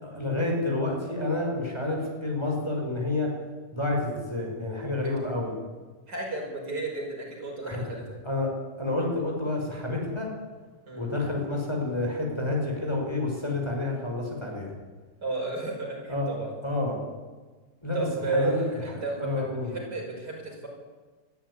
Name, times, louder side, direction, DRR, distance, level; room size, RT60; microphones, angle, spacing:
voice 1, 0.0-3.3 3.7-5.5 7.6-8.5 8.8-10.3 11.0-14.7 16.1-16.3 16.6-17.0 17.8-18.1 18.3-19.8, left 2 dB, 15° left, -1 dB, 5.7 m, -29 dB
voice 2, 6.1-8.2 10.9-11.1 15.2-16.5 17.9-19.4 19.7-20.7, right 3 dB, 70° right, -1 dB, 6.5 m, -32 dB
21.5 x 14.0 x 10.0 m, 1.3 s
omnidirectional pair, 1.8 m